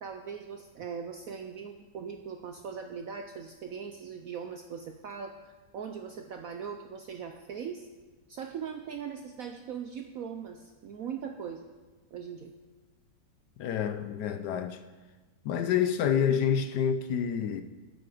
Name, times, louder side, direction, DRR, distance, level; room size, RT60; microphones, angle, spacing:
voice 1, 0.0-7.9 8.3-11.7 12.1-12.5, right 7 dB, 75° right, 0.8 m, -40 dB
voice 2, 13.6-14.8 15.4-17.6, left 8 dB, 70° left, 1.0 m, -28 dB
12.0 x 7.7 x 4.9 m
omnidirectional pair, 2.1 m